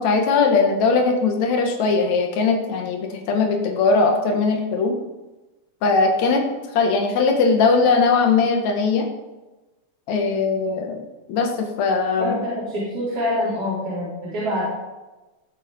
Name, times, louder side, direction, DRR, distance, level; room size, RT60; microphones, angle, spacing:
voice 1, 0.0-5.0 5.8-6.4 6.7-9.1 10.1-11.0 11.3-12.4, left 4 dB, 75° left, 3 dB, 2.9 m, -20 dB
voice 2, 12.2-14.8, left 1 dB, 50° right, -10 dB, 5.7 m, -25 dB
19.5 x 7.5 x 5.4 m, 1.1 s
omnidirectional pair, 3.3 m